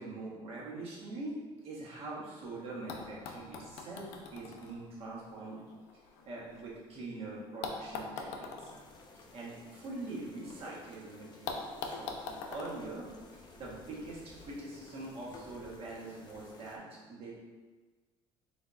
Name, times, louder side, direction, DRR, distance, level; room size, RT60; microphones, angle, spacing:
voice 1, 0.0-5.6 6.2-8.7 9.3-17.4, right 2 dB, 55° right, -5 dB, 1.3 m, -43 dB
sound 1, 2.4-2.5 2.9-7.0 7.6-10.6 10.9-11.0 11.5-13.8 14.8-14.9, left 4 dB, 85° left, 0.5 m, -44 dB
sound 2, 8.7-16.8, left 2 dB, 40° left, 0.6 m, -54 dB
3.9 x 3.5 x 2.6 m, 1.4 s
supercardioid pair, 90°, 12 cm